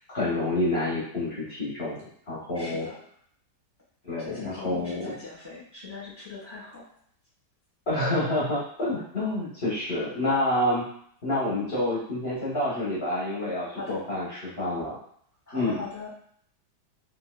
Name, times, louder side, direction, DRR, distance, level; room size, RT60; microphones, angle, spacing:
voice 1, 0.1-2.0 2.3-2.9 4.0-5.0 7.9-10.9 11.2-15.0 15.5-15.8, left 1 dB, 45° left, -7 dB, 1.0 m, -28 dB
voice 2, 2.5-3.0 4.2-6.8 13.7-14.0 15.5-16.1, left 4 dB, 10° right, -7 dB, 1.1 m, -39 dB
3.4 x 2.7 x 2.2 m, 0.63 s
omnidirectional pair, 1.8 m